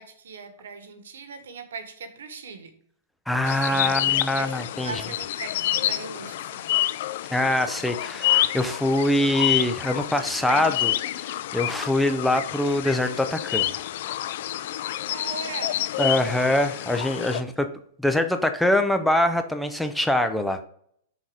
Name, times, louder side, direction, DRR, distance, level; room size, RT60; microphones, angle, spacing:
voice 1, 0.0-2.7 3.6-4.5 4.8-6.7 14.5-15.8, right 5 dB, 85° right, 8 dB, 1.1 m, -39 dB
voice 2, 3.3-5.0 7.3-13.8 16.0-17.7 18.0-20.7, left 1 dB, 5° left, 7 dB, 0.5 m, -24 dB
sound 1, 3.4-17.4, left 13 dB, 60° left, 0.3 m, -28 dB
5.7 x 3.9 x 4.8 m, 0.62 s
hypercardioid pair, 145°, 0 cm